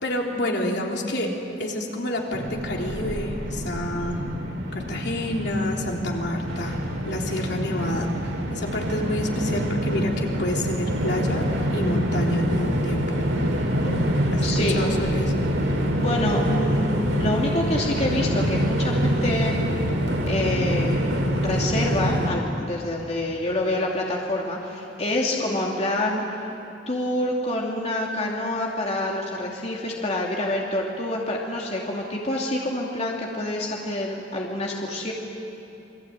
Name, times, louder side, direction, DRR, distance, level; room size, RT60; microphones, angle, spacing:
voice 1, 0.0-4.2 4.7-6.8 7.0-8.1 8.5-13.2 14.3-15.3 25.2-25.4, left 1 dB, 65° left, 0 dB, 3.6 m, -28 dB
Train, 2.3-22.3, equal, 90° right, 4.4 m, -25 dB
voice 2, 14.4-14.8 16.0-19.6 20.2-20.9 21.2-26.3 26.9-35.1, left 1 dB, 35° left, -2 dB, 2.7 m, -27 dB
28.5 x 22.0 x 9.1 m, 3.0 s
head